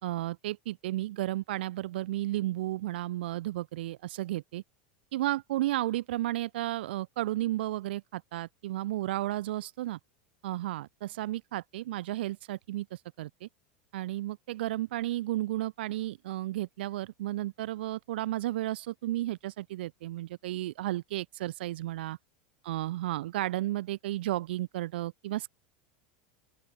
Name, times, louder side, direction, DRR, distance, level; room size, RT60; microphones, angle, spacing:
voice 1, 0.0-4.6 5.1-10.0 10.4-13.5 13.9-22.2 22.6-25.5, right 15 dB, 85° right, 1.1 m, -33 dB
open air
supercardioid pair, 150°, 5 cm